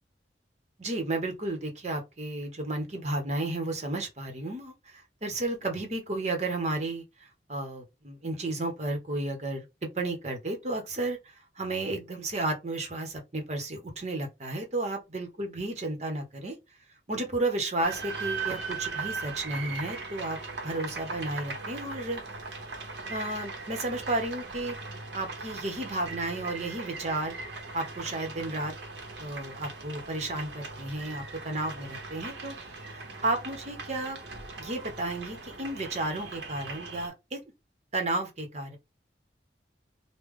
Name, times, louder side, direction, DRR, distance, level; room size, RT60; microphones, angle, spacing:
voice 1, 0.8-9.6 9.9-16.5 17.1-20.4 20.6-22.5 23.1-24.8 25.1-27.3 27.7-28.7 29.2-32.6 32.8-34.2 34.6-37.4 37.9-38.8, right 2 dB, 40° right, 0.9 m, -33 dB
sound 1, 17.8-37.1, right 4 dB, 80° right, 0.9 m, -39 dB
3.3 x 2.2 x 3.6 m
head